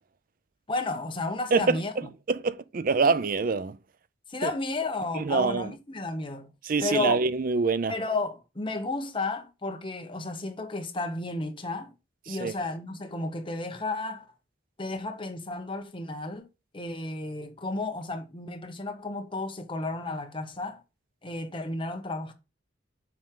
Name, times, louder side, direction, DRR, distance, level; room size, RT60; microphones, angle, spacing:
voice 1, 0.7-1.9 4.3-6.5 6.8-7.2 7.9-11.9 12.3-14.3 14.8-16.5 16.7-20.8 21.2-22.3, left 2 dB, 25° left, 1.1 m, -32 dB
voice 2, 1.5-1.8 2.3-3.8 4.4-4.5 5.1-5.7 6.6-7.9 12.3-12.5, right 4 dB, 45° right, 0.5 m, -25 dB
7.3 x 4.6 x 3.8 m
head